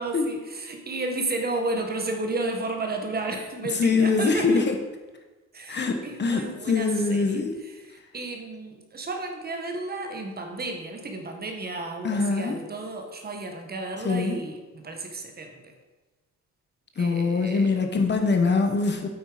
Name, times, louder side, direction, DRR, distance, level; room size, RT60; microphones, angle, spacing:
voice 1, 0.0-4.6 5.5-15.7 17.0-17.8, right 2 dB, 30° right, 4 dB, 1.3 m, -33 dB
voice 2, 3.7-4.8 5.7-7.5 12.0-12.6 14.0-14.4 17.0-19.1, left 4 dB, 35° left, 5 dB, 1.0 m, -23 dB
8.8 x 8.4 x 5.0 m, 1.2 s
wide cardioid pair, 175°, 30 cm